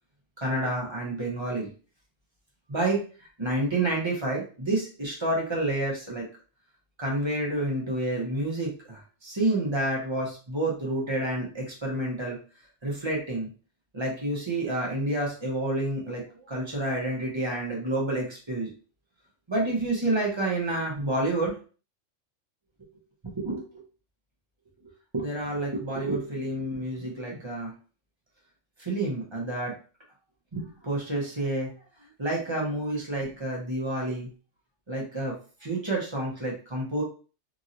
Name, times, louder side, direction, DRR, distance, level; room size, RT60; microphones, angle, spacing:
voice 1, 0.4-1.7 2.7-3.0 3.4-6.3 7.0-12.4 12.8-13.5 13.9-18.7 19.5-21.6 23.2-23.8 25.1-27.7 28.8-29.8 30.5-31.7 32.2-34.3 34.9-35.4 35.6-37.0, right 1 dB, 25° right, -3 dB, 0.8 m, -29 dB
2.9 x 2.7 x 2.5 m, 0.37 s
omnidirectional pair, 1.3 m